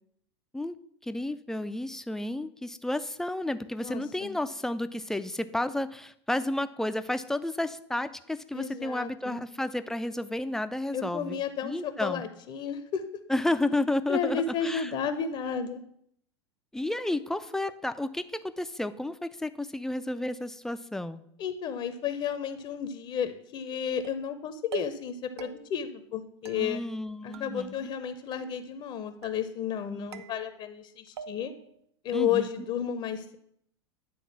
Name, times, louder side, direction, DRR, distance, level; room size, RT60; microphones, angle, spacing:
voice 1, 1.0-12.2 13.3-14.9 16.7-21.2 26.5-27.9 29.9-30.2 32.1-32.5, left 1 dB, 5° left, 11 dB, 0.4 m, -32 dB
voice 2, 3.8-4.4 8.5-9.4 10.9-13.0 14.1-15.8 21.4-26.8 27.2-31.5 32.0-33.4, left 8 dB, 35° left, 10 dB, 0.7 m, -32 dB
sound 1, 24.0-24.4 24.7-25.1 25.4-25.9 26.5-27.1 27.3-28.0 28.3-28.8 29.2-29.7 30.1-30.8 31.2-31.7, right 9 dB, 70° right, 0.7 m, -45 dB
10.0 x 3.8 x 5.9 m, 0.71 s
figure-of-eight pair, 90°, 15 cm